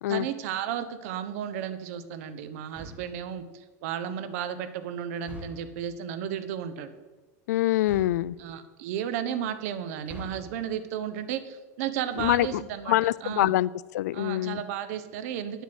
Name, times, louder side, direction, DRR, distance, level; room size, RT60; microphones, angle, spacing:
voice 1, 0.1-6.9 8.4-12.9 13.2-13.5 14.1-15.6, right 9 dB, 65° right, 11 dB, 1.1 m, -33 dB
sound 1, 2.7-3.2 5.2-5.8 7.8-8.3 10.0-10.8 12.0-12.7, right 1 dB, 15° right, 1.6 m, -44 dB
voice 2, 7.5-8.4 12.2-14.6, left 14 dB, 90° left, 20 dB, 0.4 m, -25 dB
9.5 x 8.2 x 7.9 m, 1.2 s
supercardioid pair, 145°, 9 cm